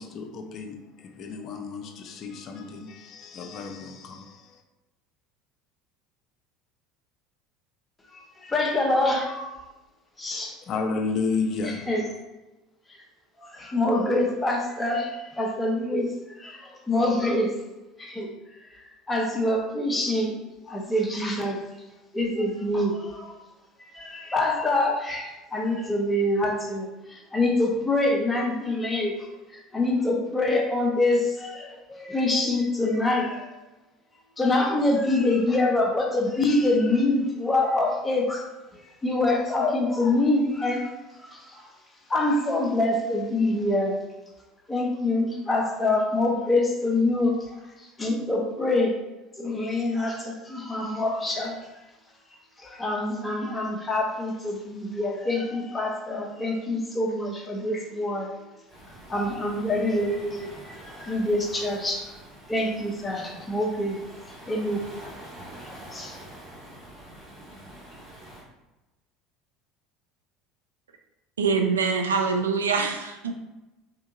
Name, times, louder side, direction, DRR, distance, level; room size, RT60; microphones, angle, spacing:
voice 1, 0.0-4.6 10.3-11.9, left 4 dB, 50° left, 4 dB, 0.4 m, -32 dB
voice 2, 8.1-9.6 10.2-10.6 11.9-12.0 13.4-16.1 16.4-17.5 18.0-18.3 18.8-20.4 20.6-21.6 22.1-23.4 23.9-29.3 29.5-33.6 34.4-38.5 38.7-40.9 41.2-41.7 42.1-44.0 44.7-47.3 48.0-49.0 49.4-51.6 52.6-58.3 59.1-62.0 62.5-64.0 64.5-64.8 65.6-66.2, left 2 dB, 20° left, 0 dB, 0.8 m, -25 dB
Waves surf, 58.7-68.4, right 1 dB, 25° right, 1.4 m, -45 dB
voice 3, 71.4-73.3, right 5 dB, 85° right, 4 dB, 0.3 m, -24 dB
3.5 x 2.8 x 2.4 m, 1.0 s
hypercardioid pair, 70°, 0 cm